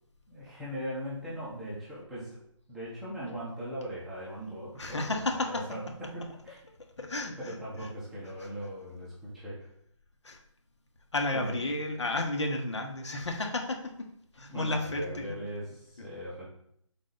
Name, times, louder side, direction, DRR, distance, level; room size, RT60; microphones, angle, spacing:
voice 1, 0.3-2.4 2.7-6.6 7.4-9.7 11.3-11.7 14.5-16.5, equal, ahead, -9 dB, 0.8 m, -39 dB
voice 2, 4.7-5.6 6.8-7.6 8.4-8.5 10.2-10.4 11.1-14.1 14.3-15.4, left 2 dB, 60° left, 3 dB, 1.4 m, -32 dB
6.3 x 4.1 x 3.9 m, 0.70 s
figure-of-eight pair, 165°, 17 cm